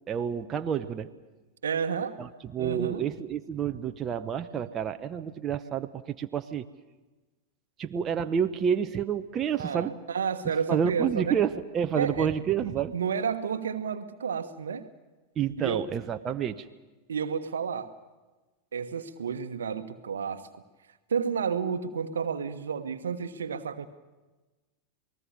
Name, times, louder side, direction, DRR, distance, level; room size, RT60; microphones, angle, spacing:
voice 1, 0.1-1.1 2.2-6.7 7.8-9.9 10.7-12.9 15.4-16.6, right 8 dB, 25° right, 7 dB, 1.0 m, -29 dB
voice 2, 1.6-2.2 2.6-3.1 9.6-11.4 11.9-12.3 12.6-14.9 15.6-15.8 17.1-17.9 18.7-20.6 21.1-23.9, right 6 dB, 65° right, 10 dB, 1.3 m, -31 dB
28.0 x 19.5 x 6.9 m, 1.2 s
figure-of-eight pair, 90°, 0 cm